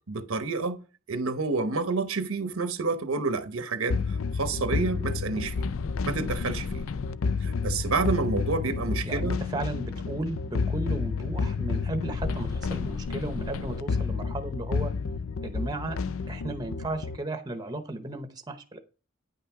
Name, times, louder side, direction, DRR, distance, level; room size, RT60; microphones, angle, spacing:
voice 1, 0.1-0.8 1.1-5.6 6.0-6.8 7.4-9.4, right 4 dB, 85° right, 0.9 m, -29 dB
sound 1, 3.9-17.2, left 4 dB, 75° left, 0.5 m, -30 dB
voice 2, 9.0-14.9 15.4-16.0 16.3-18.8, right 2 dB, 20° right, 0.8 m, -35 dB
9.8 x 5.7 x 4.7 m
head